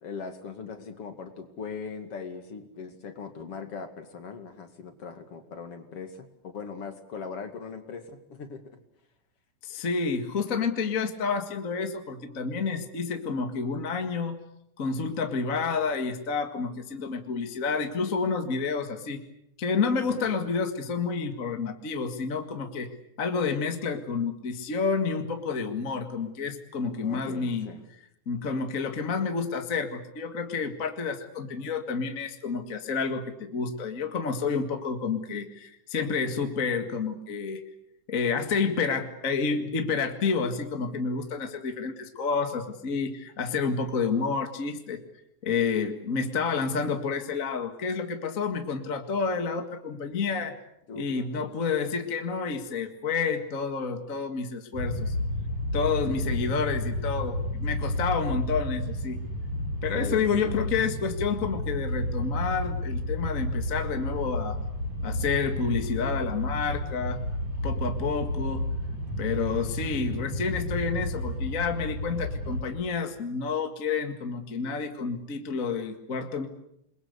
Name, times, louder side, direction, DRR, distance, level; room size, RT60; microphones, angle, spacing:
voice 1, 0.0-8.6 20.0-20.4 27.0-27.8 50.9-51.4 56.1-56.5 59.9-60.7, left 5 dB, 50° left, 7 dB, 3.1 m, -40 dB
voice 2, 9.6-14.4 14.8-19.2 19.6-22.9 23.2-27.7 28.3-37.6 38.1-45.0 45.4-50.6 51.0-55.1 55.7-59.2 59.8-64.6 65.0-67.2 67.6-68.6 69.2-76.5, left 5 dB, 30° left, 6 dB, 1.8 m, -29 dB
sound 1, 54.7-72.6, left 1 dB, 65° right, 7.7 m, -31 dB
28.5 x 22.0 x 8.2 m, 0.75 s
omnidirectional pair, 3.5 m